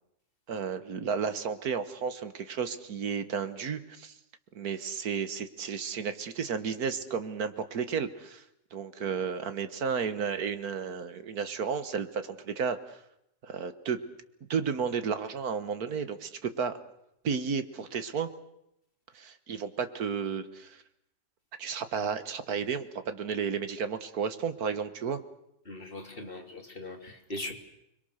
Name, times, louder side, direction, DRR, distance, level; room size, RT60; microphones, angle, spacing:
voice 1, 0.5-4.1 4.6-8.4 8.7-13.0 13.4-14.0 14.5-16.8 17.2-18.3 19.1-20.8 21.6-25.2 27.4-27.5, right 6 dB, 65° right, 10 dB, 1.8 m, -32 dB
voice 2, 25.6-27.5, left 2 dB, 35° left, 2 dB, 3.3 m, -40 dB
30.0 x 22.0 x 6.6 m, 0.80 s
omnidirectional pair, 1.7 m